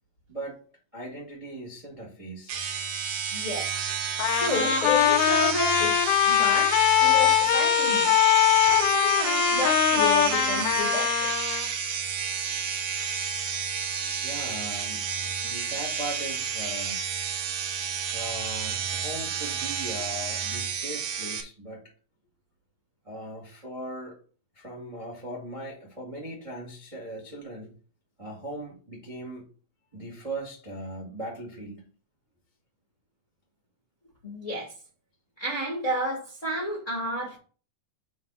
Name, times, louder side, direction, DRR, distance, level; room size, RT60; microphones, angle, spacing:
voice 1, 0.3-0.6 0.9-2.6 14.2-17.0 17.9-21.8 23.0-24.2 24.5-27.7 28.2-29.4 29.9-31.8, right 1 dB, 35° right, 0.5 m, -39 dB
sound 1, 2.5-21.4, right 7 dB, 70° right, 1.8 m, -31 dB
voice 2, 3.3-3.7 4.3-8.1 8.6-11.3 34.2-34.7 35.4-37.4, equal, 50° left, 0.9 m, -31 dB
Trumpet, 4.2-11.7, left 11 dB, 80° left, 1.9 m, -22 dB
7.5 x 3.2 x 5.6 m
omnidirectional pair, 4.4 m